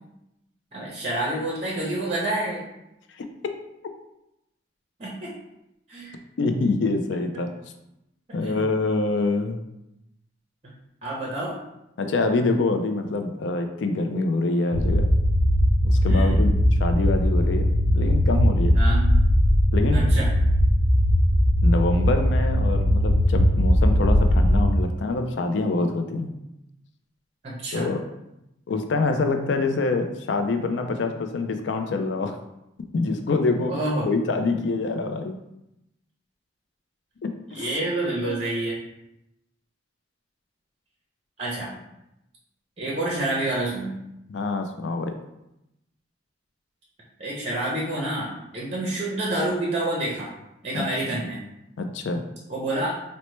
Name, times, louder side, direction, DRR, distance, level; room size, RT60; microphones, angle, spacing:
voice 1, 0.7-2.7 5.0-5.3 5.9-6.2 7.3-7.5 8.3-8.7 10.6-10.7 11.0-11.6 16.1-16.4 18.7-19.1 19.9-20.3 27.4-27.9 33.7-34.1 37.5-38.8 41.4-41.8 42.8-44.0 47.2-50.3 50.6-51.4 52.5-53.0, right 1 dB, 35° right, -4 dB, 0.6 m, -28 dB
voice 2, 6.4-7.5 8.3-9.6 12.0-15.1 15.8-16.5 16.8-18.8 19.7-20.0 21.6-26.3 27.7-28.0 28.7-32.3 32.9-33.7 34.0-35.3 37.2-37.7 38.2-38.4 44.3-45.1 50.7-50.8 51.8-52.2, left 3 dB, 70° left, 6 dB, 0.4 m, -25 dB
noise.deep.loop, 14.7-24.7, equal, 15° right, 1.0 m, -19 dB
4.2 x 2.1 x 3.1 m, 0.86 s
head